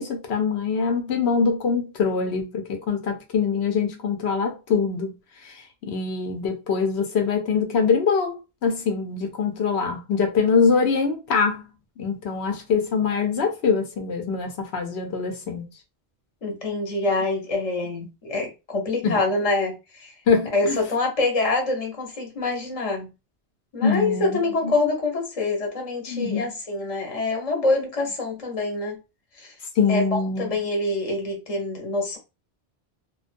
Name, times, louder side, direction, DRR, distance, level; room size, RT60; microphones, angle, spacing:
voice 1, 0.0-11.7 12.0-15.7 19.0-19.2 20.3-20.8 23.8-24.4 26.1-26.5 29.8-30.5, left 5 dB, 80° left, 0.9 m, -24 dB
voice 2, 16.4-20.1 20.5-23.1 23.7-29.0 29.3-29.5 29.9-32.2, left 2 dB, 40° left, 0.7 m, -25 dB
2.3 x 2.2 x 2.5 m
omnidirectional pair, 1.1 m